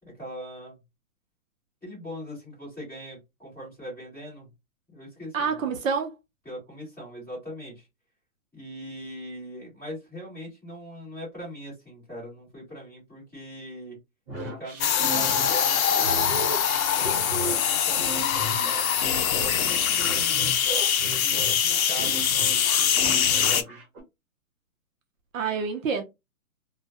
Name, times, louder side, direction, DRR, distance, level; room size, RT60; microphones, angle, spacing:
voice 1, 0.0-0.8 1.8-4.5 4.9-5.7 6.4-7.9 8.5-14.0 14.4-18.8 19.5-20.5 21.1-23.8, equal, 5° left, 1.4 m, -41 dB
voice 2, 5.3-6.1 25.3-26.0, right 5 dB, 65° right, 0.6 m, -27 dB
sound 1, 14.3-24.0, right 1 dB, 40° right, 1.0 m, -35 dB
sound 2, 14.8-23.6, left 8 dB, 75° left, 0.6 m, -23 dB
2.5 x 2.2 x 2.4 m
hypercardioid pair, 170°, 43 cm